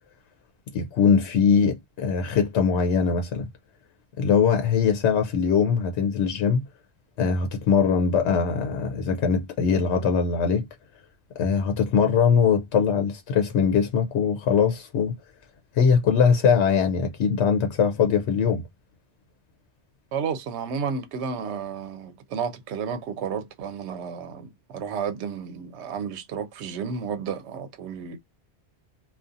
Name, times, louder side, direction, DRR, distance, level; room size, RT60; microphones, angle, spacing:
voice 1, 0.7-3.5 4.2-6.6 7.2-10.7 11.4-15.2 15.7-18.6, left 6 dB, 85° left, 0.9 m, -21 dB
voice 2, 20.1-28.2, right 6 dB, 85° right, 0.9 m, -32 dB
2.4 x 2.3 x 2.5 m
omnidirectional pair, 1.1 m